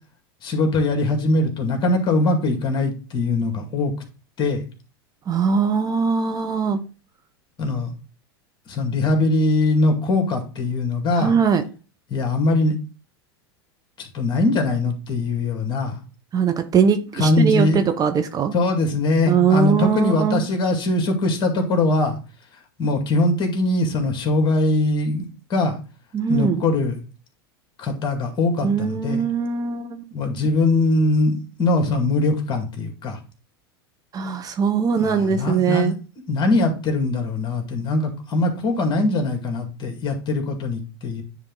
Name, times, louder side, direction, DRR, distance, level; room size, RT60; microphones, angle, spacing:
voice 1, 0.4-3.9 4.4-4.6 7.6-7.9 8.7-11.3 12.1-12.8 14.0-16.0 17.2-17.8 18.5-22.2 22.8-25.8 26.3-27.0 27.8-29.2 30.1-33.2 35.0-35.9 36.3-41.2, left 2 dB, 35° left, 4 dB, 2.2 m, -21 dB
voice 2, 5.3-6.8 11.1-11.6 16.3-18.5 19.3-20.4 26.1-26.6 28.6-30.0 34.1-36.0, right 6 dB, 30° right, 8 dB, 0.9 m, -21 dB
9.9 x 3.5 x 3.7 m, 0.34 s
hypercardioid pair, 95°, 13 cm